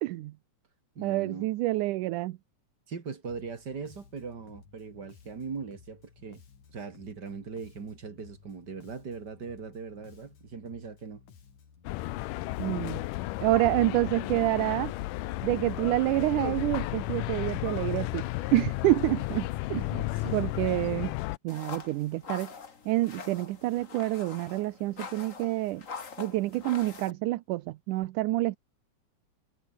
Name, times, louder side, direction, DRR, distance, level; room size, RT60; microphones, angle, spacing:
voice 1, 0.0-0.3 1.0-2.4 12.6-13.0 13.4-14.9 15.4-18.3 18.5-19.9 20.3-21.1 21.4-22.5 22.9-25.8 26.2-28.6, right 17 dB, 75° right, 2.2 m, -28 dB
voice 2, 1.0-1.5 2.9-6.4 6.7-11.2 19.9-20.7, right 5 dB, 35° right, 2.4 m, -40 dB
Bass guitar, 3.2-13.1, left 6 dB, 65° left, 4.9 m, -56 dB
sound 1, 11.8-21.4, left 18 dB, 80° left, 2.2 m, -33 dB
sound 2, 21.5-27.1, left 5 dB, 35° left, 1.5 m, -44 dB
omnidirectional pair, 3.8 m